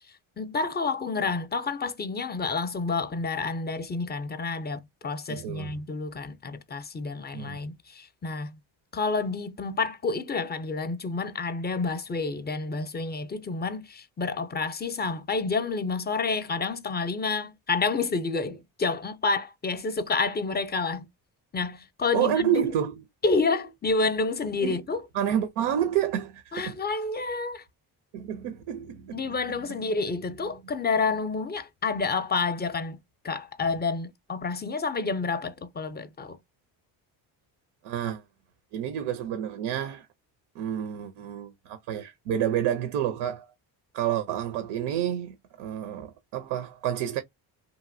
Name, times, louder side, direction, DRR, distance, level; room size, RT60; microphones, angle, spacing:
voice 1, 0.4-8.6 8.9-21.1 21.5-22.6 23.2-25.0 26.5-27.6 29.1-33.0 33.2-36.4, left 4 dB, 20° left, 0.5 m, -29 dB
voice 2, 5.3-5.8 7.3-7.6 22.1-23.0 24.6-24.8 25.1-26.8 28.1-29.2 29.8-29.9 37.8-38.2 38.7-40.1 40.6-43.5 43.9-47.2, right 10 dB, 85° right, 0.6 m, -29 dB
2.9 x 2.6 x 2.5 m
supercardioid pair, 70°, 47 cm